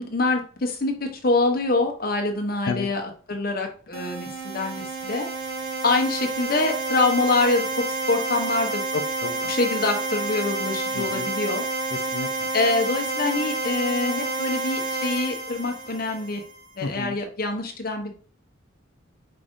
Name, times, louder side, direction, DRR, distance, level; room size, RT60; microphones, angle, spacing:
voice 1, 0.0-5.3 5.8-8.8 9.5-11.6 12.5-16.4 16.8-18.1, left 3 dB, 45° left, 3 dB, 0.8 m, -25 dB
sound 1, 3.9-16.6, right 3 dB, 45° right, 0.7 m, -29 dB
voice 2, 8.9-9.5 10.9-11.3 11.9-12.5 16.8-17.2, left 4 dB, 65° left, 6 dB, 0.5 m, -32 dB
4.9 x 2.6 x 3.6 m, 0.40 s
head